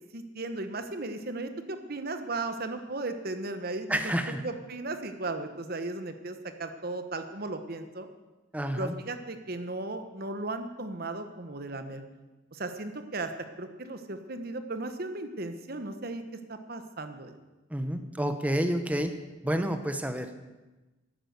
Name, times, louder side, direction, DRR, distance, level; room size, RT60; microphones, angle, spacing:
voice 1, 0.1-4.1 4.4-8.1 8.8-12.0 12.5-13.3 13.6-16.2 16.5-17.4, right 2 dB, 50° right, 8 dB, 1.2 m, -36 dB
voice 2, 3.9-4.4 8.5-8.9 17.7-19.1 19.4-20.3, right 1 dB, 5° right, 8 dB, 0.9 m, -29 dB
11.5 x 9.9 x 8.0 m, 1.1 s
head